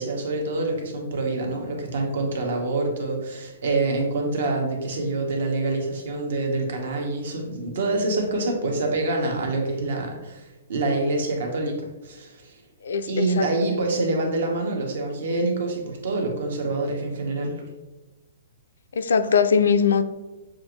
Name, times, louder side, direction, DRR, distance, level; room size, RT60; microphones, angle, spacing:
voice 1, 0.0-12.6 13.1-17.6, right 2 dB, 60° right, 1 dB, 1.1 m, -26 dB
voice 2, 12.8-13.5 18.9-20.0, left 6 dB, 85° left, 10 dB, 0.4 m, -21 dB
6.4 x 2.5 x 3.0 m, 1.1 s
hypercardioid pair, 170°, 0 cm